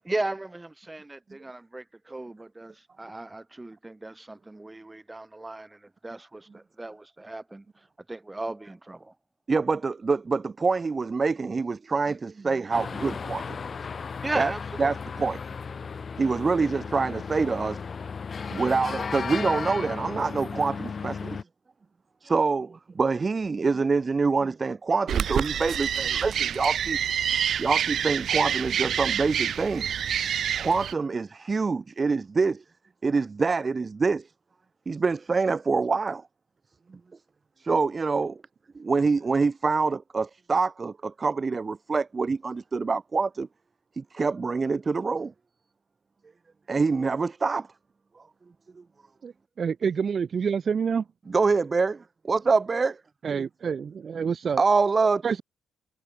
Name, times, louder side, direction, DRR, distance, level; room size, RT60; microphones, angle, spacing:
voice 1, 0.0-7.7 8.1-9.1 13.9-14.9, right 2 dB, 15° right, 6.2 m, -36 dB
voice 2, 9.5-13.7 14.4-14.5 14.8-15.4 16.2-17.8 18.5-21.4 22.2-27.0 27.6-29.9 30.6-32.6 33.0-34.3 34.9-36.2 36.9-37.0 37.6-38.4 38.7-43.5 44.0-45.3 46.7-47.7 48.2-48.3 48.8-48.9 51.3-53.0 54.6-55.2, right 4 dB, 30° right, 0.6 m, -26 dB
sound 1, 12.7-21.4, left 5 dB, 40° left, 0.9 m, -35 dB
sound 2, 25.1-30.9, right 9 dB, 60° right, 2.5 m, -27 dB
voice 3, 49.2-51.0 53.2-54.6 55.2-55.4, right 6 dB, 45° right, 2.2 m, -27 dB
cardioid pair, 90°, 0 cm